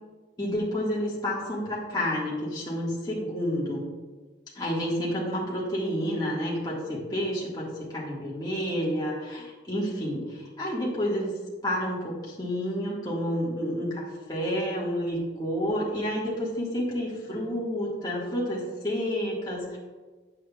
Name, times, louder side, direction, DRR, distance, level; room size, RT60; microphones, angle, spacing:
voice 1, 0.4-3.9 4.5-19.8, equal, 20° left, -6 dB, 1.6 m, -30 dB
9.0 x 7.3 x 2.3 m, 1.3 s
head